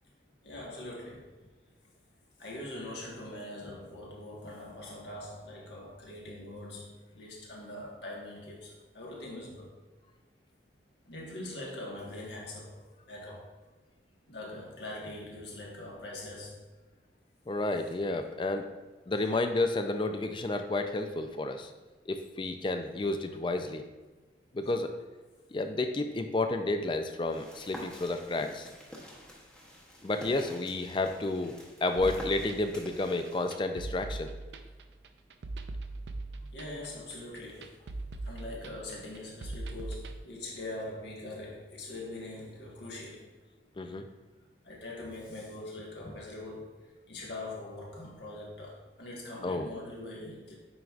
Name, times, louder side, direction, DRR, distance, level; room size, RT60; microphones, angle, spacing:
voice 1, 0.4-1.3 2.4-9.7 11.1-13.5 14.3-16.6 36.1-43.3 44.6-46.7 47.1-50.5, left 1 dB, 70° left, -3 dB, 1.5 m, -43 dB
voice 2, 17.5-18.7 19.1-21.7 22.1-23.8 24.5-24.9 25.5-28.7 30.0-34.3 43.8-44.1 49.4-49.7, left 2 dB, 25° left, 7 dB, 0.4 m, -31 dB
sound 1, 27.3-33.5, equal, 5° left, 0.9 m, -47 dB
sound 2, 32.0-40.2, right 2 dB, 75° right, 0.5 m, -40 dB
9.1 x 4.6 x 2.4 m, 1.3 s
head